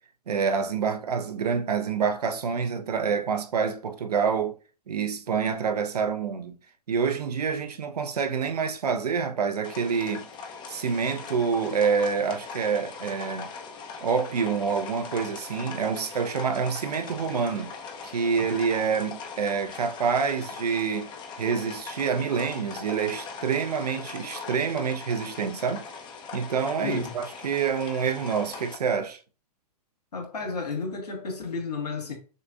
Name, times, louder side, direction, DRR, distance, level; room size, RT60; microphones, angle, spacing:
voice 1, 0.3-4.5 4.9-6.5 6.9-10.3 10.7-13.5 14.0-17.7 18.0-21.1 21.4-25.8 26.3-29.2, right 6 dB, 70° right, 0.8 m, -27 dB
sound 1, 9.6-28.8, left 5 dB, 20° left, 0.7 m, -40 dB
voice 2, 26.8-27.1 30.1-32.2, left 4 dB, 75° left, 1.6 m, -32 dB
6.5 x 2.6 x 2.4 m
figure-of-eight pair, 115°, 21 cm